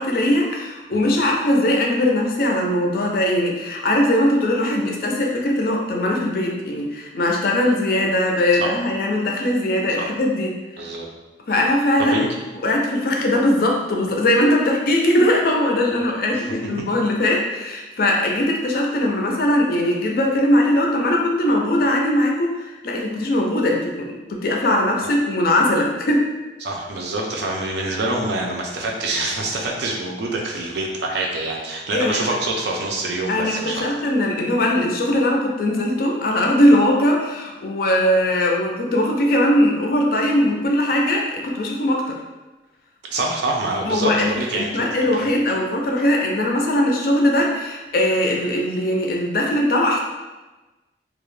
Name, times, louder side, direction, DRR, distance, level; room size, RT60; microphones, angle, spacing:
voice 1, 0.0-10.5 10.8-10.9 11.5-12.3 12.6-26.3 31.9-32.2 33.3-42.2 43.8-50.0, left 1 dB, 50° left, 0 dB, 0.4 m, -20 dB
voice 2, 10.8-11.1 12.1-12.3 16.3-16.4 26.6-33.8 43.1-45.1, right 2 dB, 65° right, 0 dB, 0.4 m, -26 dB
2.3 x 2.1 x 3.1 m, 1.1 s
head